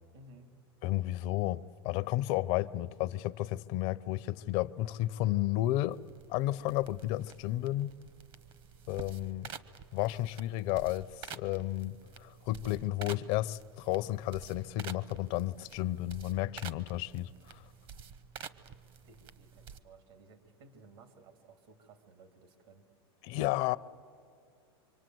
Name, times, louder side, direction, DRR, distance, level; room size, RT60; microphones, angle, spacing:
voice 1, 0.1-0.5 19.0-22.9, right 3 dB, 70° right, 3.0 m, -57 dB
voice 2, 0.8-6.0 6.3-7.9 8.9-9.5 9.9-17.6 23.2-23.8, left 15 dB, 55° left, 0.6 m, -32 dB
sound 1, 5.9-19.8, right 7 dB, 40° right, 1.0 m, -50 dB
25.5 x 25.0 x 7.8 m
supercardioid pair, 120°, 13 cm